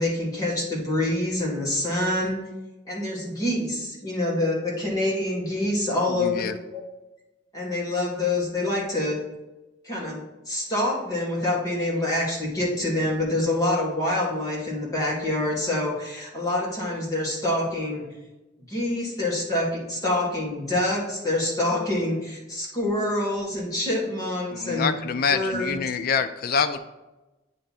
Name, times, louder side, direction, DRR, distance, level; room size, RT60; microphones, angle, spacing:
voice 1, 0.0-2.4 2.9-6.8 7.5-9.2 9.8-18.1 18.7-24.9 25.3-25.8, left 1 dB, 20° left, -5 dB, 1.9 m, -26 dB
voice 2, 6.1-6.6 24.5-26.8, left 6 dB, 50° left, 8 dB, 0.4 m, -26 dB
9.0 x 3.4 x 4.2 m, 1.0 s
head